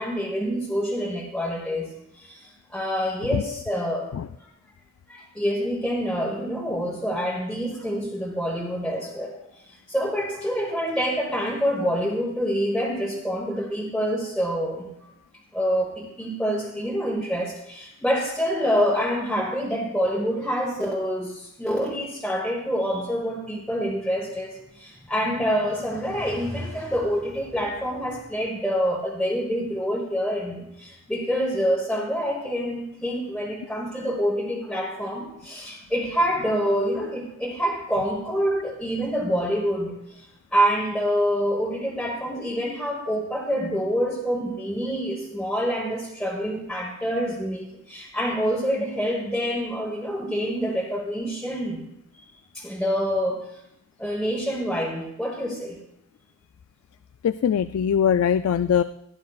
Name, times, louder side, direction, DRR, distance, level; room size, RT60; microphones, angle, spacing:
voice 1, 0.0-1.9 2.2-4.1 5.1-9.3 9.9-15.1 15.5-40.2 40.5-51.8 52.5-53.5 54.0-55.8, equal, 5° left, -5 dB, 1.3 m, -26 dB
voice 2, 57.2-58.8, left 8 dB, 85° left, 13 dB, 0.3 m, -21 dB
16.5 x 10.5 x 2.4 m, 0.80 s
head